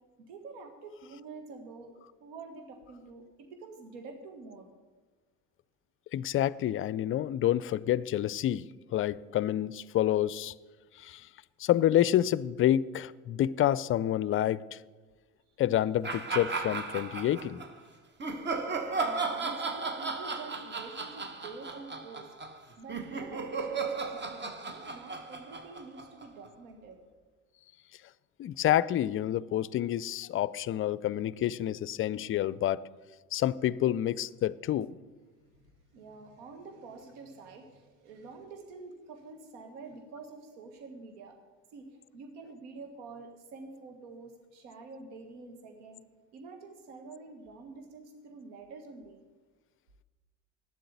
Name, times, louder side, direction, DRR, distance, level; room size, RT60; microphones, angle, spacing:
voice 1, 0.3-4.7 18.9-27.0 35.5-35.6 35.9-41.4 41.7-41.9 42.1-46.0 46.3-49.2, right 3 dB, 75° right, 1.6 m, -47 dB
voice 2, 6.1-8.6 8.9-10.5 11.0-11.3 11.6-14.8 15.6-17.6 28.4-32.8 33.3-34.9, left 12 dB, 35° left, 0.5 m, -28 dB
sound 1, 16.0-17.7 18.2-26.5, right 4 dB, 30° right, 1.5 m, -35 dB
9.8 x 7.7 x 9.5 m
hypercardioid pair, 70°, 35 cm